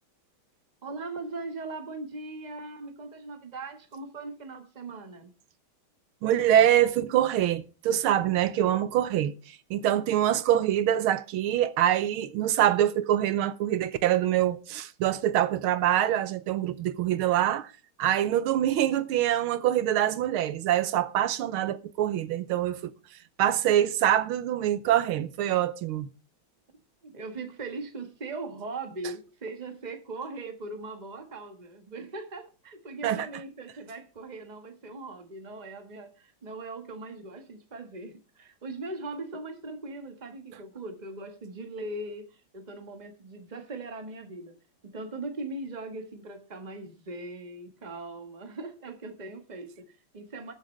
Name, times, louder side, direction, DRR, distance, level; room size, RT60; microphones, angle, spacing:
voice 1, 0.8-5.3 27.0-44.6 44.8-50.5, right 2 dB, 25° right, 1.4 m, -40 dB
voice 2, 6.2-17.7 18.0-22.9 23.4-26.1 33.0-33.3, right 11 dB, 80° right, 1.6 m, -25 dB
20.5 x 7.7 x 3.2 m
omnidirectional pair, 2.3 m